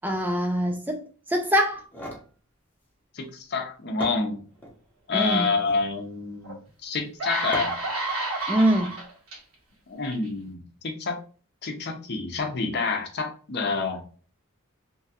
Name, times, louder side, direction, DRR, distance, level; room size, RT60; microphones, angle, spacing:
voice 1, 0.0-1.0 1.3-1.8 5.1-5.5 8.5-8.9, equal, 10° right, 0.3 m, -23 dB
sound 1, 1.7-2.3 3.6-3.7 4.0-4.8 5.5-5.9 7.5-8.0, equal, 10° left, 0.7 m, -38 dB
voice 2, 3.1-4.4 5.1-7.7 9.9-11.2 11.6-14.0, left 4 dB, 55° left, 0.6 m, -28 dB
sound 2, 6.4-6.5 7.0-9.4 10.0-10.3, right 2 dB, 85° right, 1.3 m, -30 dB
3.0 x 2.3 x 2.8 m
head